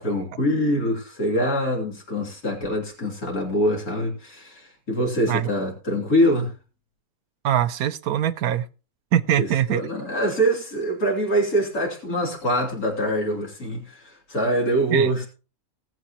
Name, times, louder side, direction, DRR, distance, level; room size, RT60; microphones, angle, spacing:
voice 1, 0.0-6.5 9.4-15.3, equal, 85° left, 3.8 m, -24 dB
voice 2, 7.4-8.6 9.1-9.8 14.9-15.1, right 11 dB, 90° right, 1.2 m, -22 dB
19.0 x 7.8 x 3.0 m
omnidirectional pair, 1.5 m